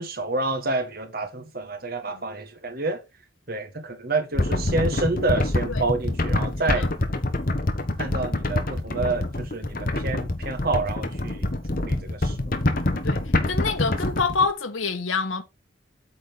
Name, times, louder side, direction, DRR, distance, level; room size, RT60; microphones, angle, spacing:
voice 1, 0.0-3.0 3.5-6.9 8.0-11.5 11.8-12.4, right 3 dB, 45° right, 1.5 m, -28 dB
sound 1, 4.3-14.4, left 1 dB, 45° left, 1.2 m, -26 dB
voice 2, 13.0-15.4, left 4 dB, 80° left, 1.3 m, -26 dB
8.5 x 4.2 x 5.1 m
head